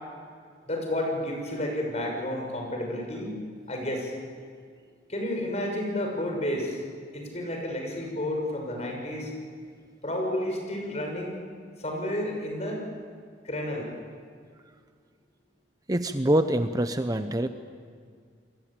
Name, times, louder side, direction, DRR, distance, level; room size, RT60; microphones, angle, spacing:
voice 1, 0.7-4.1 5.1-6.8 7.1-9.3 10.0-11.4 11.8-12.9 13.4-13.9, left 1 dB, 40° left, 2 dB, 6.3 m, -31 dB
voice 2, 15.9-17.5, right 1 dB, 20° right, 9 dB, 0.8 m, -25 dB
29.0 x 22.5 x 8.9 m, 2.1 s
head